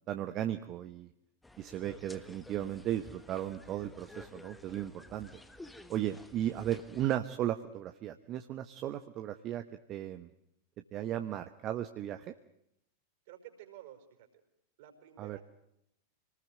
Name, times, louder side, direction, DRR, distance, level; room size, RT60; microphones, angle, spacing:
voice 1, 0.1-1.1 1.6-5.4 5.9-9.6 9.9-10.3 10.9-12.3 15.2-15.4, right 11 dB, 35° right, 8 dB, 1.2 m, -36 dB
sound 1, 1.4-7.0, left 2 dB, 5° left, 1.5 m, -52 dB
voice 2, 13.3-14.4 14.8-15.4, right 12 dB, 50° right, 6 dB, 5.2 m, -52 dB
26.5 x 19.5 x 9.2 m, 0.79 s
figure-of-eight pair, 90°, 0 cm